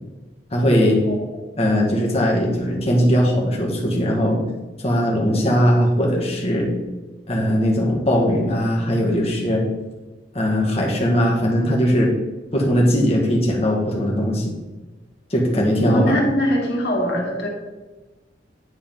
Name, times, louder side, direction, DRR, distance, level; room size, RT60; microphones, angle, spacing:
voice 1, 0.5-1.0 1.6-4.4 4.8-6.7 7.3-9.6 10.3-12.1 12.5-14.5 15.3-16.3, equal, 35° left, -2 dB, 1.9 m, -19 dB
voice 2, 15.8-17.5, equal, 70° left, -2 dB, 2.3 m, -22 dB
9.9 x 4.2 x 5.5 m, 1.2 s
head